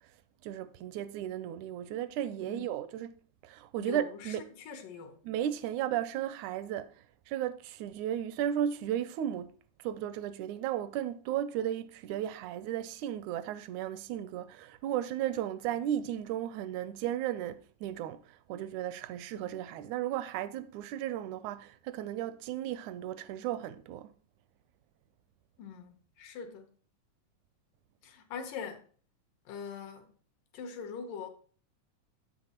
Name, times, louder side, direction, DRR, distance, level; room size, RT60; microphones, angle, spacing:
voice 1, 0.4-3.1 3.4-4.5 5.3-9.5 9.8-24.1, right 11 dB, 80° right, 1.8 m, -35 dB
voice 2, 3.8-5.2 25.6-26.8 28.0-28.9 29.5-30.1 30.5-31.3, left 6 dB, 80° left, 2.8 m, -42 dB
9.5 x 8.2 x 3.0 m
omnidirectional pair, 3.8 m